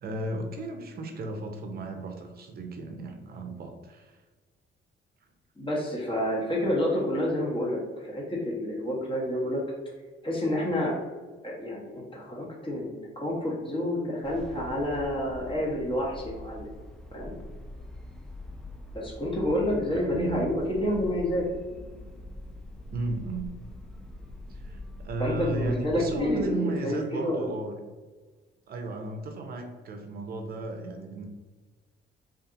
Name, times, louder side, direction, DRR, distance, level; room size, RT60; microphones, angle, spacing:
voice 1, 0.0-4.2 19.9-20.5 22.9-23.5 24.5-27.8 28.7-31.3, right 3 dB, 50° right, 4 dB, 0.5 m, -35 dB
voice 2, 5.6-9.6 10.2-10.9 11.4-16.7 17.1-17.3 18.9-21.4 25.2-27.5, left 1 dB, 25° left, -4 dB, 0.9 m, -29 dB
sound 1, 14.2-26.5, left 1 dB, 5° left, 0.3 m, -43 dB
2.6 x 2.4 x 2.5 m, 1.3 s
cardioid pair, 90°, 20 cm